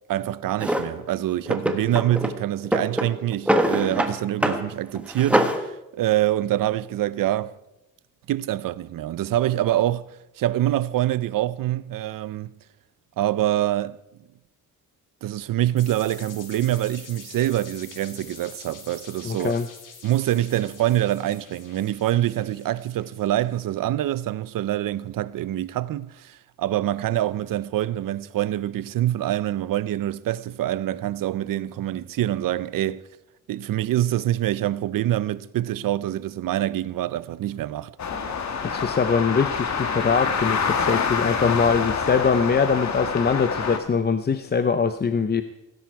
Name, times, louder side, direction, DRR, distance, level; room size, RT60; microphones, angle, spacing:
voice 1, 0.1-7.6 8.3-12.5 13.2-14.0 15.2-19.6 20.0-33.0 33.5-37.9, right 13 dB, 90° right, 0.6 m, -25 dB
Drawer open or close, 0.6-0.9 1.5-2.3 2.6-4.1 4.4-4.6 4.9-5.6, equal, 5° right, 1.4 m, -23 dB
sound 1, 15.8-23.5, left 5 dB, 75° left, 3.3 m, -46 dB
voice 2, 19.2-19.7 38.6-45.4, left 5 dB, 30° left, 0.7 m, -22 dB
sound 2, 38.0-43.8, left 5 dB, 60° left, 1.9 m, -26 dB
17.5 x 16.5 x 4.7 m
wide cardioid pair, 135°, 32 cm